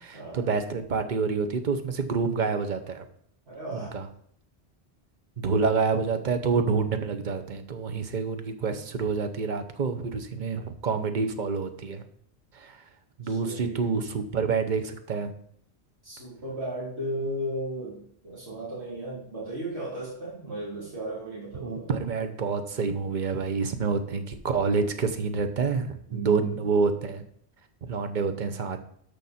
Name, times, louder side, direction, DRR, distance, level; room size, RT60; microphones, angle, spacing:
voice 1, 0.0-3.0 3.7-4.1 5.4-12.0 12.5-12.8 13.2-15.3 21.6-27.2 27.9-28.8, right 5 dB, 45° right, 8 dB, 1.0 m, -28 dB
voice 2, 3.5-4.0 13.2-13.9 16.0-21.9 26.1-26.6, right 1 dB, 75° right, -8 dB, 3.5 m, -35 dB
13.0 x 5.3 x 4.3 m, 0.65 s
omnidirectional pair, 1.1 m